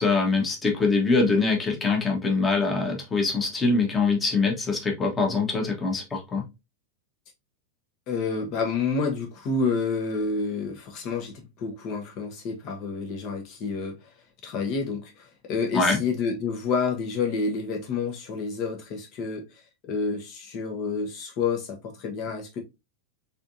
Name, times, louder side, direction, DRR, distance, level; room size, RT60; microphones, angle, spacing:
voice 1, 0.0-6.4 15.7-16.0, left 4 dB, 15° left, 1.5 m, -23 dB
voice 2, 8.1-14.0 14.4-22.6, left 4 dB, 40° left, 1.3 m, -29 dB
4.2 x 3.7 x 2.7 m
figure-of-eight pair, 90°, 0 cm